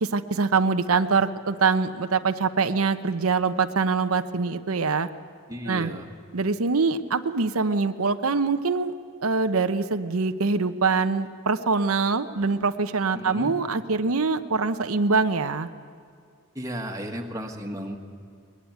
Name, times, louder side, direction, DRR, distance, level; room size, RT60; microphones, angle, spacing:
voice 1, 0.0-5.1 5.7-5.9 6.3-8.9 9.2-15.7, right 4 dB, 90° right, 9 dB, 0.8 m, -24 dB
voice 2, 5.5-6.1 13.1-13.5 16.6-18.0, equal, 15° right, 2 dB, 1.6 m, -34 dB
22.0 x 20.5 x 9.5 m, 2.2 s
head